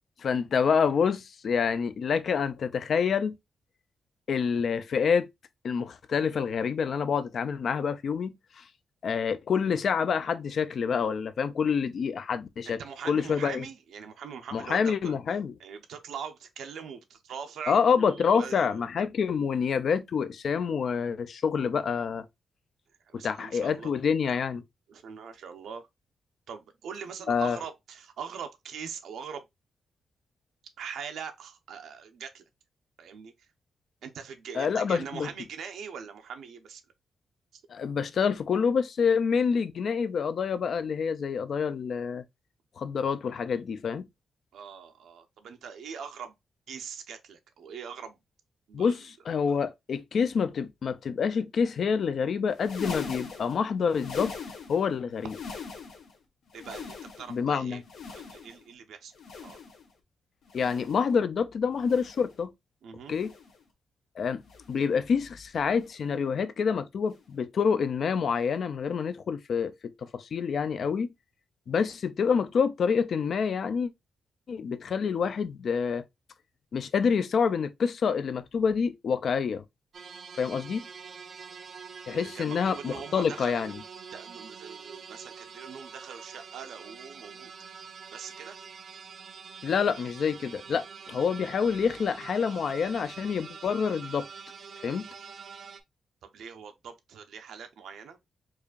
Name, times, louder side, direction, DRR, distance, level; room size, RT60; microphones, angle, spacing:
voice 1, 0.2-3.3 4.3-5.3 5.6-8.6 9.0-12.8 13.1-13.7 14.5-15.5 17.7-22.2 23.1-24.6 27.3-27.6 34.6-35.3 37.7-42.2 42.8-44.1 48.7-54.3 54.7-55.3 57.3-57.8 60.5-62.5 63.1-63.3 64.2-64.4 64.7-71.1 71.7-73.9 74.5-76.0 76.7-79.6 80.4-80.8 82.1-83.8 89.6-94.3 94.8-95.0, left 6 dB, 50° left, 0.4 m, -27 dB
voice 2, 12.7-15.1 15.6-18.9 23.0-23.9 24.9-25.9 26.5-29.4 30.8-32.4 33.0-33.5 34.0-36.8 37.5-37.6 44.5-46.3 46.7-48.2 48.7-49.0 56.5-57.8 58.1-59.1 59.4-59.6 62.8-63.2 82.2-83.6 84.1-87.5 88.1-88.6 96.2-98.2, right 7 dB, 85° right, 0.6 m, -42 dB
sound 1, 52.5-54.9 55.2-56.1 56.5-57.4 57.8-58.7 59.1-59.9 60.4-61.1 61.8-62.3 63.1-63.6 64.4-64.9 65.8-66.1 67.1-67.3 68.4-68.5, left 5 dB, 75° left, 1.0 m, -41 dB
sound 2, 79.9-95.8, right 6 dB, 45° right, 0.4 m, -45 dB
4.7 x 2.5 x 2.3 m
wide cardioid pair, 175°, 0 cm